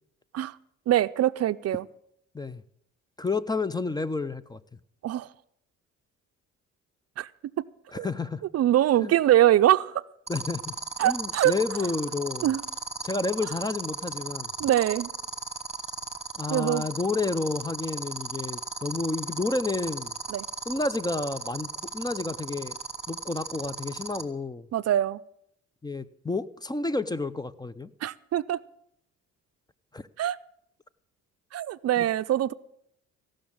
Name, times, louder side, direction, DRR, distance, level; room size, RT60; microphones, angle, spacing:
voice 1, 0.9-1.8 5.0-5.3 7.2-7.3 7.9-8.1 8.5-10.0 11.0-11.5 12.4-12.6 14.6-15.1 16.5-16.8 20.3-20.5 24.7-25.2 28.0-28.6 30.2-30.4 31.5-32.5, right 12 dB, 55° right, 0.5 m, -23 dB
voice 2, 3.2-4.6 7.9-8.4 9.0-9.1 10.3-10.7 11.0-12.5 13.0-14.5 16.4-20.1 20.7-22.8 23.1-24.7 25.8-27.9 29.9-30.1 32.0-32.1, left 3 dB, 15° left, 0.5 m, -30 dB
sound 1, 10.3-24.2, right 4 dB, 20° right, 1.4 m, -34 dB
16.0 x 6.3 x 8.7 m
cardioid pair, 90°, 30 cm